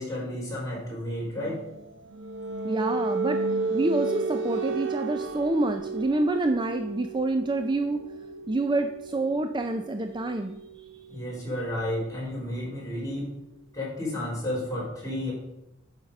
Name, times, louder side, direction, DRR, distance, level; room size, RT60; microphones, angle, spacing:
voice 1, 0.0-1.6 11.1-13.4 13.7-15.3, left 1 dB, 20° left, -6 dB, 4.1 m, -32 dB
sound 1, 1.3-12.9, right 3 dB, 80° right, 0.7 m, -33 dB
voice 2, 2.6-3.4 3.7-8.0 8.5-10.6, right 2 dB, 25° right, 6 dB, 0.5 m, -27 dB
8.8 x 6.2 x 5.4 m, 0.84 s
head